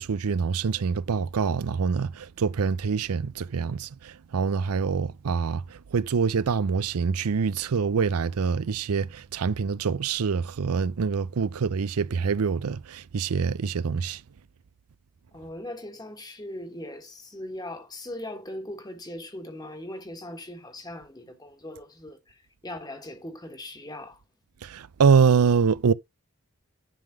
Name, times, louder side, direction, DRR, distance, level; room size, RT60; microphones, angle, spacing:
voice 1, 0.0-14.2 24.6-25.9, right 5 dB, 85° right, 0.5 m, -25 dB
voice 2, 15.3-24.2, left 1 dB, 15° left, 1.5 m, -39 dB
11.0 x 3.7 x 6.1 m
head